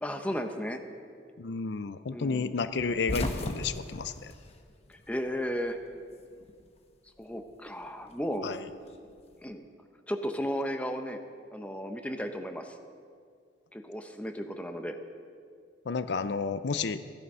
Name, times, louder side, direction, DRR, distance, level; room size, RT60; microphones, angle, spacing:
voice 1, 0.0-0.8 2.1-2.6 4.9-5.8 7.2-8.5 9.4-9.7 10.1-11.2 11.5-12.8 13.7-15.0, equal, 10° left, 5 dB, 0.8 m, -34 dB
voice 2, 1.4-4.3 8.4-8.6 15.9-17.0, left 5 dB, 70° left, 13 dB, 0.5 m, -31 dB
sound 1, 2.8-5.3 5.6-6.7 7.8-9.3, left 1 dB, 35° left, 1.0 m, -37 dB
15.5 x 11.0 x 5.5 m, 2.2 s
head